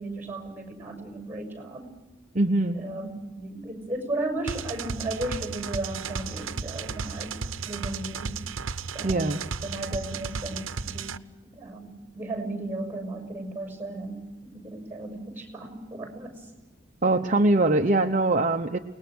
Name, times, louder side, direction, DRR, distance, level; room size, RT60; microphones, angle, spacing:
voice 1, 0.0-1.9 2.7-8.4 8.9-9.2 9.6-16.5, right 2 dB, 10° right, 4 dB, 6.3 m, -35 dB
voice 2, 2.3-2.8 9.0-9.4 17.0-18.8, right 2 dB, 40° right, 4 dB, 0.8 m, -22 dB
sound 1, 4.5-11.2, right 5 dB, 85° right, 0.8 m, -34 dB
29.0 x 20.0 x 6.3 m, 1.0 s
head